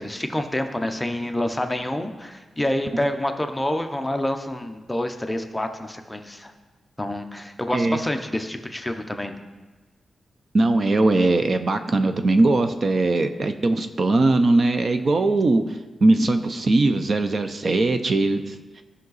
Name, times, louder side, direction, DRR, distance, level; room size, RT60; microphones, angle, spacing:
voice 1, 0.0-6.5 7.0-9.4, left 1 dB, 10° left, 6 dB, 0.7 m, -27 dB
voice 2, 10.5-15.6 16.0-18.8, right 2 dB, 40° right, 8 dB, 0.5 m, -20 dB
15.5 x 5.7 x 4.0 m, 1.3 s
wide cardioid pair, 155°, 0 cm